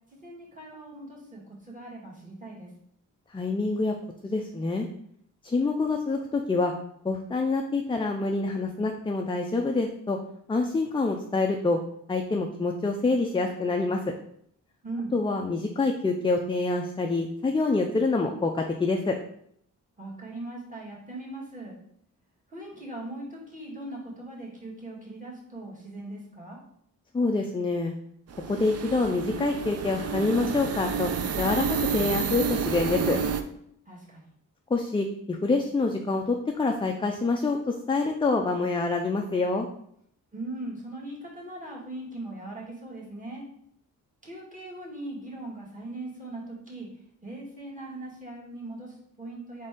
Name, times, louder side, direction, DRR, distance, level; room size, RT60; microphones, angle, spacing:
voice 1, 0.1-2.7 14.8-15.1 20.0-21.8 22.5-26.6 33.9-34.2 40.3-43.4 44.2-49.7, right 2 dB, 25° right, -5 dB, 1.9 m, -40 dB
voice 2, 3.3-3.9 4.2-4.9 5.4-6.7 7.0-10.2 10.5-11.8 12.1-14.0 15.1-19.2 27.1-27.9 28.5-31.1 31.4-31.7 31.9-33.2 34.7-39.7, left 3 dB, 15° left, 2 dB, 0.4 m, -26 dB
sound 1, 28.3-33.4, right 6 dB, 50° right, 0.5 m, -30 dB
4.0 x 3.4 x 3.7 m, 0.69 s
cardioid pair, 75°, 33 cm